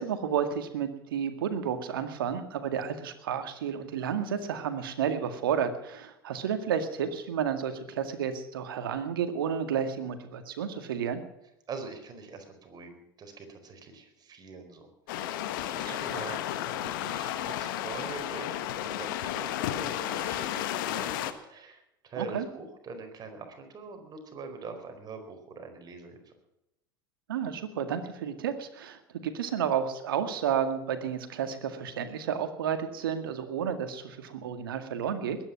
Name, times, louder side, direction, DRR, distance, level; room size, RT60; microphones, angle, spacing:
voice 1, 0.0-11.2 16.1-16.2 22.2-22.5 27.3-35.4, right 8 dB, 75° right, 9 dB, 2.0 m, -31 dB
voice 2, 11.7-26.3, right 4 dB, 35° right, 5 dB, 4.5 m, -44 dB
sound 1, 15.1-21.3, left 12 dB, 65° left, 1.4 m, -33 dB
21.0 x 10.0 x 6.0 m, 0.86 s
hypercardioid pair, 80°, 12 cm